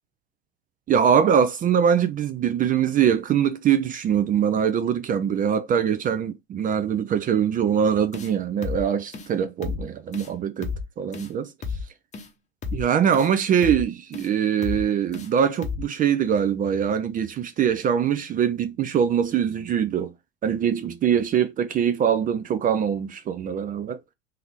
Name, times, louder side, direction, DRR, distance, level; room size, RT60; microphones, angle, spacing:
voice 1, 0.9-11.5 12.7-20.1 20.4-24.0, right 8 dB, 25° right, 0.4 m, -23 dB
sound 1, 8.1-8.3 8.6-8.8 9.1-9.3 9.6-9.8 10.1-10.3 10.6-10.8 11.1-11.3 11.6-11.8 12.1-12.3 12.6-12.8 13.1-13.3 13.6-13.8 14.1-14.3 14.6-14.8 15.1-15.3 15.6-15.8, left 5 dB, 20° left, 0.9 m, -32 dB
3.8 x 2.7 x 3.1 m
hypercardioid pair, 85°, 33 cm